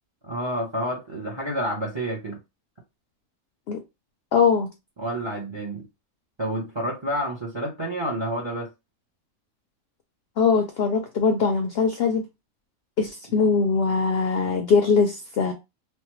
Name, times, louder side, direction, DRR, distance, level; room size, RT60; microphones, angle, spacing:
voice 1, 0.2-2.4 5.0-5.8 6.4-8.7, right 1 dB, 30° right, 0.5 m, -29 dB
voice 2, 4.3-4.7 10.4-12.2 13.0-15.5, left 5 dB, 70° left, 0.6 m, -21 dB
3.2 x 2.1 x 3.0 m
omnidirectional pair, 1.5 m